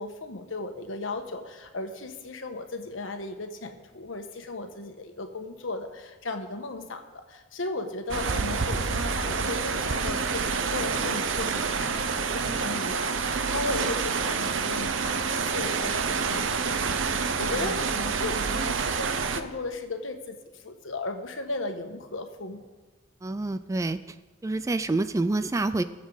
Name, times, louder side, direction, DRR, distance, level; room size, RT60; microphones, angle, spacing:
voice 1, 0.0-22.7, left 2 dB, 85° left, 5 dB, 1.3 m, -36 dB
sound 1, 8.1-19.4, right 5 dB, 75° right, 0.7 m, -28 dB
voice 2, 23.2-24.0 24.4-25.8, right 2 dB, 15° right, 12 dB, 0.3 m, -27 dB
21.5 x 7.3 x 4.0 m, 1.2 s
head